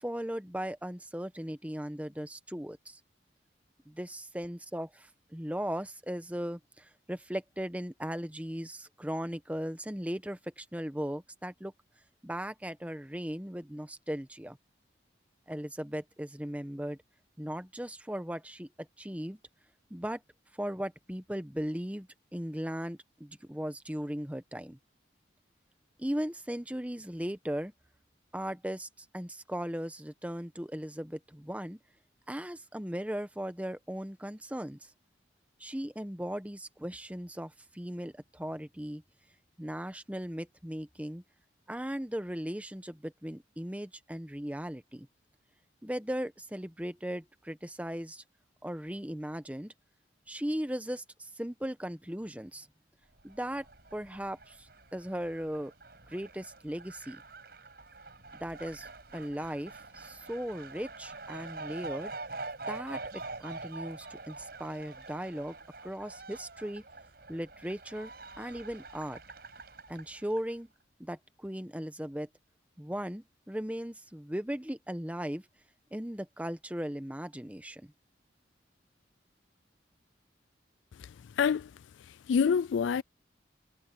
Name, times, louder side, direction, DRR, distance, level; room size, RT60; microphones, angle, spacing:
voice 1, 0.0-3.0 3.9-11.7 12.2-14.6 15.5-17.0 17.4-19.4 19.9-20.2 20.6-24.8 26.0-27.7 28.3-28.9 29.1-31.8 32.3-34.9 35.6-39.0 39.6-41.2 41.7-45.1 45.8-48.2 48.6-49.7 50.3-52.7 53.2-55.7 56.1-57.2 58.3-62.1 62.7-65.6 65.8-66.8 67.3-69.2 69.9-70.7 71.0-72.3 72.8-75.5 75.9-77.9, equal, 10° right, 1.0 m, -37 dB
Fowl, 53.2-70.5, right 3 dB, 55° right, 6.0 m, -45 dB
voice 2, 81.4-81.7 82.3-83.0, left 6 dB, 90° left, 0.3 m, -26 dB
head